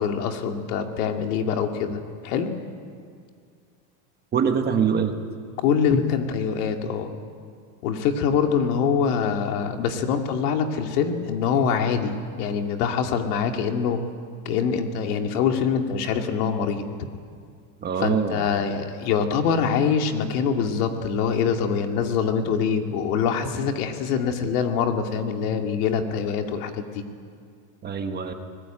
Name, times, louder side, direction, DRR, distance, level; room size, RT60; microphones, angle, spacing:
voice 1, 0.0-2.5 5.6-7.1 7.8-14.0 14.4-16.8 18.0-27.0, left 6 dB, 80° left, 4 dB, 2.6 m, -24 dB
voice 2, 4.3-5.1 17.8-18.5 27.8-28.3, right 7 dB, 20° right, 6 dB, 1.4 m, -24 dB
24.5 x 20.0 x 9.0 m, 2.1 s
supercardioid pair, 160°, 45 cm